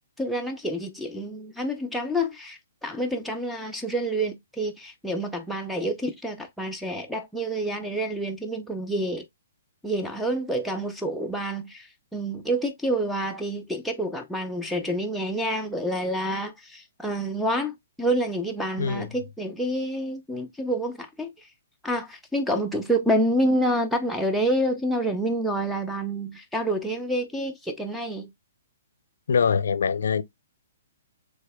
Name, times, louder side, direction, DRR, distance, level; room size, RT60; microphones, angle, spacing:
voice 1, 0.2-9.2 9.8-21.5 21.8-28.3, right 1 dB, ahead, 0.5 m, -28 dB
voice 2, 18.8-19.1 29.3-30.2, left 6 dB, 75° left, 0.5 m, -23 dB
5.3 x 3.4 x 2.2 m
hypercardioid pair, 140°, 0 cm